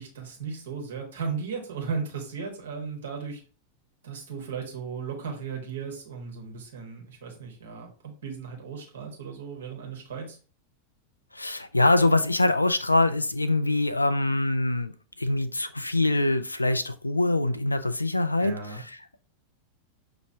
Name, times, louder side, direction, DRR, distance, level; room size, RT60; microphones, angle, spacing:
voice 1, 0.0-3.4 4.0-10.4 18.4-18.8, right 5 dB, 60° right, 1 dB, 1.3 m, -36 dB
voice 2, 11.3-14.9 15.2-19.2, left 2 dB, 85° left, 12 dB, 0.3 m, -24 dB
6.1 x 2.8 x 2.7 m, 0.37 s
figure-of-eight pair, 90°, 0 cm